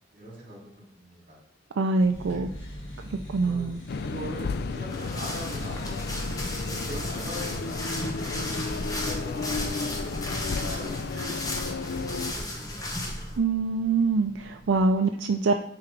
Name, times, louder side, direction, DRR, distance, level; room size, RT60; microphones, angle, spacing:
voice 1, 0.1-1.4 2.2-2.4 3.4-6.0 6.6-8.5 9.0-10.2 10.5-13.0, equal, 45° right, -3 dB, 2.7 m, -41 dB
voice 2, 1.7-2.5 3.3-3.8 13.4-15.6, right 3 dB, 75° right, 5 dB, 0.4 m, -24 dB
sound 1, 2.0-14.9, equal, 80° left, 1.6 m, -44 dB
sound 2, 3.9-12.3, left 4 dB, 55° left, 0.4 m, -33 dB
sound 3, 4.8-13.4, left 1 dB, 20° left, 0.9 m, -34 dB
9.5 x 4.7 x 3.3 m, 0.70 s
head